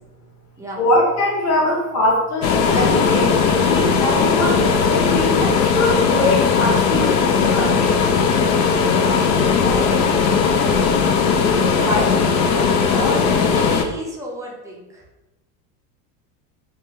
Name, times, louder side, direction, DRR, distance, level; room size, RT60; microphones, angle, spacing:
voice 1, 0.8-7.9 11.9-12.1, left 1 dB, 35° left, -4 dB, 1.3 m, -22 dB
sound 1, 2.4-13.8, left 5 dB, 85° left, 0.6 m, -18 dB
voice 2, 8.7-11.0 11.6-12.0 12.5-15.0, right 1 dB, 5° right, -3 dB, 0.4 m, -33 dB
2.8 x 2.2 x 3.5 m, 0.98 s
supercardioid pair, 110°, 48 cm